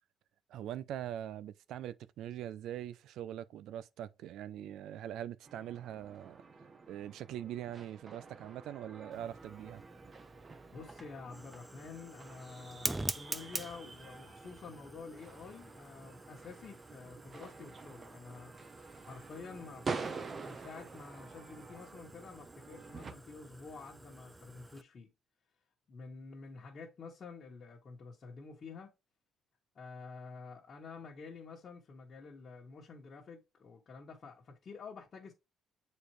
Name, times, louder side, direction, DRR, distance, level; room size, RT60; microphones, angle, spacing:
voice 1, 0.5-6.4 6.9-9.8, right 11 dB, 75° right, 0.4 m, -42 dB
sound 1, 5.4-23.1, right 4 dB, 35° right, 0.9 m, -48 dB
Fire, 9.1-24.8, right 2 dB, 10° right, 0.4 m, -46 dB
voice 2, 10.7-18.5 19.0-20.1 20.3-25.1 25.9-28.9 29.7-35.3, left 4 dB, 40° left, 1.6 m, -49 dB
6.9 x 4.4 x 3.2 m
cardioid pair, 115°, 0 cm